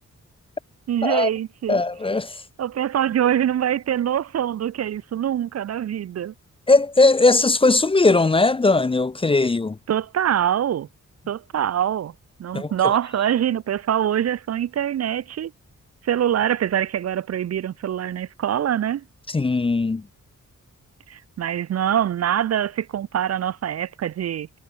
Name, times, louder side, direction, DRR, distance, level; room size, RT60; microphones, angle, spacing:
voice 1, 0.9-1.8 2.6-6.3 9.9-10.9 11.3-12.1 12.4-15.5 16.0-19.0 21.1-24.6, right 10 dB, 55° right, 0.6 m, -24 dB
voice 2, 1.7-2.4 6.7-9.8 12.5-12.9 19.3-20.0, left 3 dB, 20° left, 0.6 m, -19 dB
wide cardioid pair, 180°, 30 cm